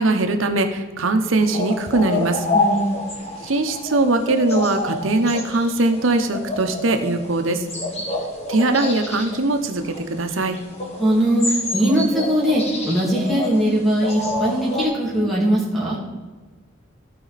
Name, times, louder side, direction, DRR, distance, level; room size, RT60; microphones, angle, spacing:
voice 1, 0.0-2.5 3.4-7.7 8.5-10.6, right 2 dB, 85° right, 7 dB, 0.9 m, -21 dB
sound 1, 1.4-14.9, left 2 dB, 35° left, 2.0 m, -28 dB
voice 2, 2.5-3.1 11.0-16.0, equal, ahead, -5 dB, 2.4 m, -20 dB
15.0 x 5.2 x 4.1 m, 1.3 s
head